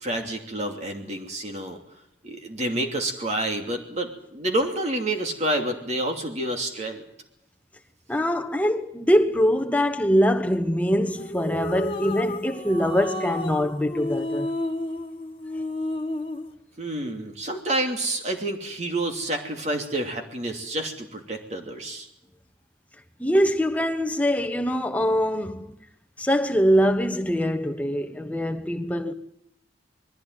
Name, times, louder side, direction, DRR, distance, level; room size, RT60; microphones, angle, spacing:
voice 1, 0.0-1.8 2.2-7.0 16.8-22.1, right 1 dB, 35° right, 2.8 m, -28 dB
voice 2, 8.1-14.5 23.2-25.7 26.2-29.1, equal, 10° left, 1.2 m, -23 dB
sound 1, 11.1-16.5, left 1 dB, 30° left, 1.8 m, -31 dB
21.0 x 15.0 x 9.3 m
head